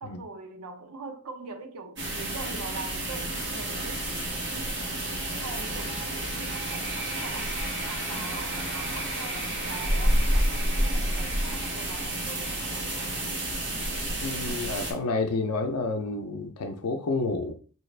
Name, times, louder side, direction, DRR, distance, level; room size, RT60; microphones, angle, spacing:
voice 1, 0.0-4.1 4.9-5.0 5.3-13.2, right 3 dB, 80° right, 0.7 m, -42 dB
sound 1, 2.0-14.9, right 1 dB, 55° right, 1.2 m, -29 dB
voice 2, 14.2-17.5, left 3 dB, 85° left, 0.5 m, -29 dB
4.6 x 2.4 x 3.2 m
head